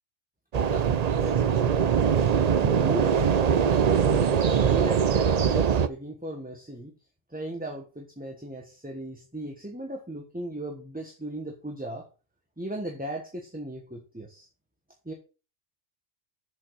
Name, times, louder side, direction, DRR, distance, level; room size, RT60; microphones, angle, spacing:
sound 1, 0.5-5.9, right 7 dB, 50° right, 0.5 m, -22 dB
voice 1, 1.2-4.3 4.7-6.9 7.3-12.1 12.6-14.5 15.0-15.1, right 1 dB, 5° right, 2 dB, 1.1 m, -37 dB
7.0 x 5.4 x 6.3 m, 0.35 s
omnidirectional pair, 1.2 m